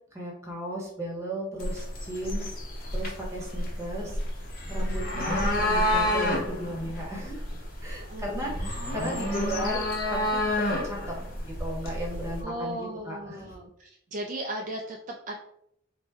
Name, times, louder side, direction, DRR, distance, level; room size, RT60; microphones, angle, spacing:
voice 1, 0.1-2.6 2.9-4.2 4.7-7.4 7.8-10.4 10.8-11.1 11.4-13.5, equal, 15° right, -2 dB, 1.0 m, -35 dB
sound 1, 1.6-12.4, left 1 dB, 45° left, 1.0 m, -29 dB
voice 2, 8.0-8.7 12.4-15.3, right 1 dB, 40° right, 1 dB, 0.3 m, -37 dB
4.2 x 2.1 x 3.4 m, 0.74 s
head